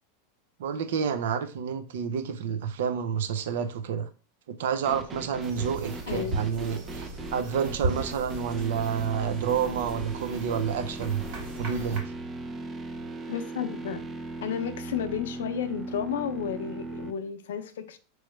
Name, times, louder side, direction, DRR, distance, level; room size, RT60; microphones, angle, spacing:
voice 1, 0.6-4.1 4.6-11.2 11.6-12.0, right 7 dB, 80° right, 0.5 m, -29 dB
sound 1, 4.8-17.1, right 2 dB, 20° right, 0.5 m, -38 dB
sound 2, 5.4-12.0, right 1 dB, 60° right, 1.8 m, -37 dB
voice 2, 6.1-6.5 13.3-14.0 14.4-18.0, left 8 dB, 85° left, 0.6 m, -32 dB
4.6 x 3.1 x 3.2 m
supercardioid pair, 135°, 0 cm